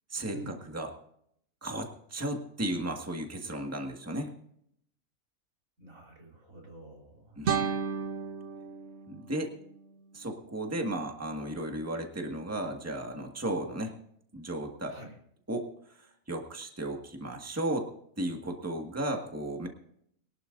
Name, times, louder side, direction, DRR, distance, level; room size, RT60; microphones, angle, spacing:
voice 1, 0.1-0.9 1.6-4.3 7.4-7.7 9.1-9.5 10.1-13.9 14.3-15.0 15.5-17.9 18.2-19.7, right 1 dB, 10° right, 3 dB, 1.7 m, -35 dB
voice 2, 5.8-7.4 14.9-15.1, right 2 dB, 85° right, -1 dB, 4.3 m, -47 dB
sound 1, 7.4-10.5, right 6 dB, 55° right, 1.2 m, -34 dB
22.5 x 12.0 x 2.6 m, 0.69 s
omnidirectional pair, 1.4 m